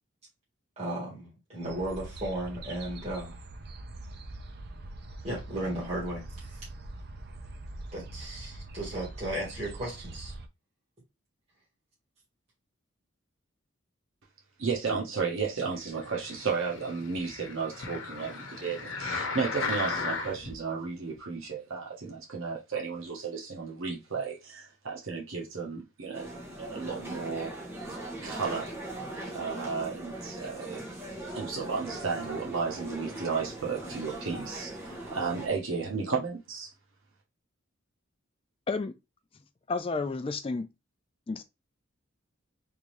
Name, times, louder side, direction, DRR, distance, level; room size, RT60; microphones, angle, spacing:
voice 1, 0.8-3.4 5.2-6.2 7.9-10.3, right 1 dB, 30° right, 1.6 m, -35 dB
sound 1, 1.6-10.5, right 2 dB, 50° right, 0.5 m, -43 dB
voice 2, 14.6-27.5 28.2-28.7 29.3-30.8 31.3-36.7, right 5 dB, 85° right, 1.0 m, -33 dB
sound 2, 16.0-20.6 21.2-21.3, left 4 dB, 65° left, 0.9 m, -36 dB
sound 3, 26.1-35.5, right 1 dB, 10° right, 0.8 m, -40 dB
voice 3, 39.7-40.7 41.3-41.4, left 3 dB, 25° left, 0.3 m, -31 dB
3.6 x 2.7 x 3.1 m
head